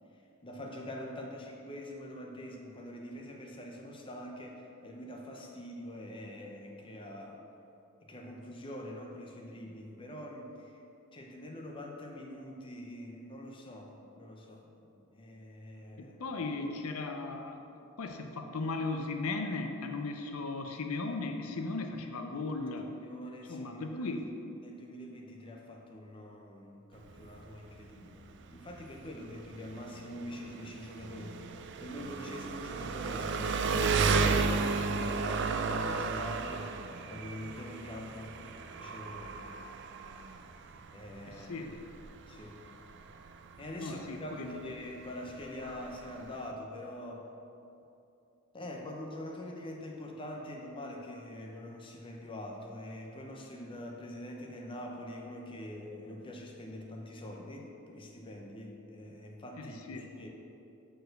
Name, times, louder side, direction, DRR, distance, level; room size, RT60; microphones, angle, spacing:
voice 1, 0.4-7.5 8.0-10.8 11.1-16.2 22.7-24.1 24.6-36.7 37.1-38.4 38.8-39.4 40.9-41.6 42.3-42.6 43.6-47.3 48.5-60.3, left 1 dB, 25° left, 0 dB, 0.7 m, -44 dB
voice 2, 16.0-17.6 18.0-22.9 23.5-24.3 41.3-41.8 43.8-44.6 59.6-60.1, left 3 dB, 75° left, 5 dB, 0.6 m, -37 dB
Engine, 26.9-46.5, right 4 dB, 55° right, 0.4 m, -34 dB
6.5 x 4.6 x 6.5 m, 2.8 s
head